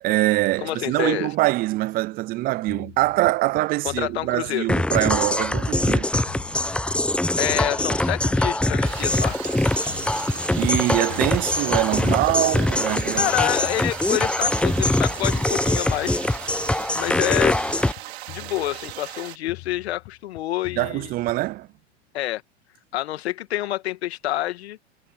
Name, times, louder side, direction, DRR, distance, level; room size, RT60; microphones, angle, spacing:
voice 1, 0.0-6.1 10.6-13.3 20.8-21.7, right 18 dB, 30° right, 0.4 m, -23 dB
voice 2, 0.6-1.3 3.8-4.7 7.4-9.4 13.1-16.2 16.9-17.6 18.3-21.1 22.1-22.4 22.9-24.8, left 14 dB, 70° left, 2.1 m, -27 dB
sound 1, 2.7-4.8 5.1-7.2 7.5-9.6 9.9-12.0 12.3-14.3 14.7-16.8 17.1-19.2 19.5-21.6, left 26 dB, 50° left, 7.6 m, -44 dB
sound 2, 4.7-17.9, left 1 dB, 5° left, 1.1 m, -23 dB
sound 3, 8.8-19.4, right 14 dB, 70° right, 4.7 m, -38 dB
hypercardioid pair, 105°, 33 cm